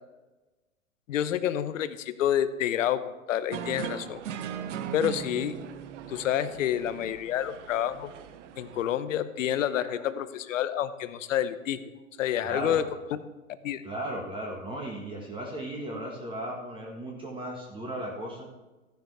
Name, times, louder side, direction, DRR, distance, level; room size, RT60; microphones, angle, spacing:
voice 1, 1.1-4.2 4.9-5.6 6.1-8.1 8.6-11.8 12.2-13.2 13.6-13.8, left 10 dB, 65° left, 13 dB, 0.9 m, -28 dB
sound 1, 3.5-8.8, right 8 dB, 60° right, 0.9 m, -39 dB
voice 2, 9.7-10.1 12.4-12.9 13.8-18.5, right 1 dB, 10° right, -1 dB, 1.6 m, -36 dB
14.5 x 10.5 x 3.3 m, 1.1 s
hypercardioid pair, 120°, 42 cm